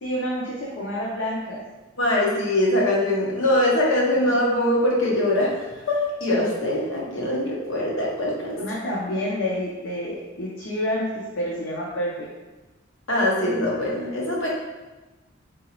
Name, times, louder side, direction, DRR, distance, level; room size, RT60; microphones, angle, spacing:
voice 1, 0.0-1.6 8.5-12.3, equal, 65° left, -4 dB, 0.7 m, -28 dB
voice 2, 2.0-5.5 5.9-8.6 13.1-14.5, left 1 dB, 85° left, -4 dB, 1.1 m, -22 dB
3.9 x 3.7 x 3.0 m, 1.1 s
head